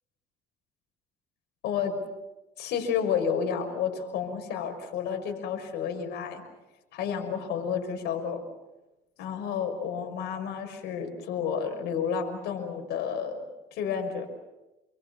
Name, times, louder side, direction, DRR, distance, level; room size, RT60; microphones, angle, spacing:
voice 1, 1.6-2.0 2.6-6.4 6.9-8.4 9.2-13.4 13.7-14.3, left 7 dB, 80° left, 5 dB, 5.9 m, -31 dB
29.0 x 23.5 x 7.2 m, 1.0 s
cardioid pair, 110°, 17 cm